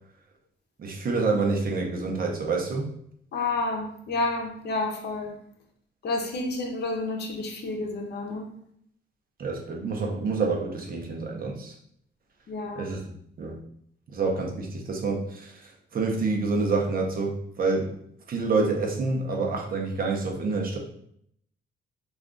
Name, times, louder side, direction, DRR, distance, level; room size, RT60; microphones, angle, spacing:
voice 1, 0.8-2.9 9.4-11.7 12.8-13.0 13.4-13.6 14.1-18.0 18.3-20.8, right 3 dB, 45° right, 1 dB, 0.7 m, -27 dB
voice 2, 3.3-5.4 6.0-8.5 12.5-12.9, left 2 dB, 55° left, 2 dB, 0.7 m, -30 dB
2.4 x 2.3 x 3.7 m, 0.68 s
cardioid pair, 90°, 20 cm